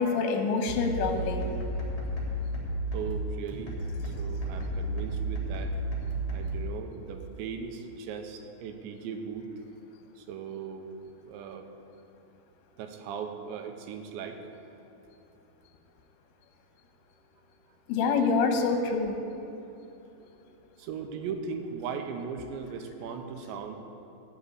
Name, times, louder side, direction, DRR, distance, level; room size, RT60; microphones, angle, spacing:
voice 1, 0.0-1.6 17.9-19.2, left 4 dB, 85° left, 5 dB, 3.3 m, -26 dB
sound 1, 0.7-6.7, right 1 dB, 10° left, 2.4 m, -32 dB
voice 2, 2.9-5.7 6.3-9.5 10.2-10.9 11.2-11.7 12.8-14.5 20.8-23.8, right 6 dB, 85° right, 6 dB, 3.2 m, -38 dB
16.0 x 5.4 x 9.9 m, 2.9 s
omnidirectional pair, 5.1 m